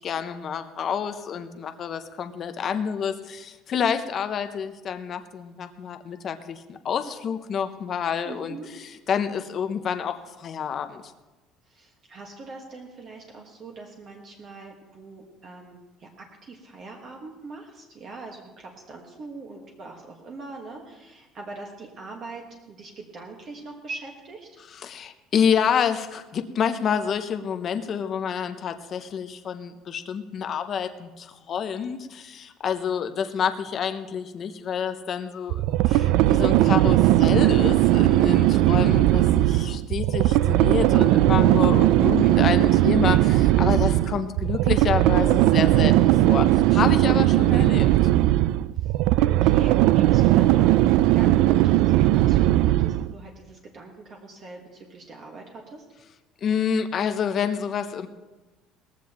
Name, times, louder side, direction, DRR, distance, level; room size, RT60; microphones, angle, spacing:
voice 1, 0.0-11.0 24.7-47.9 56.4-58.1, left 7 dB, 30° left, 8 dB, 0.6 m, -28 dB
voice 2, 8.2-8.7 11.7-24.6 48.7-55.8, right 3 dB, 35° right, 1 dB, 1.4 m, -42 dB
sound 1, 35.5-53.1, right 15 dB, 70° right, 0.3 m, -19 dB
19.0 x 14.5 x 3.0 m, 1.1 s
cardioid pair, 175°, 0 cm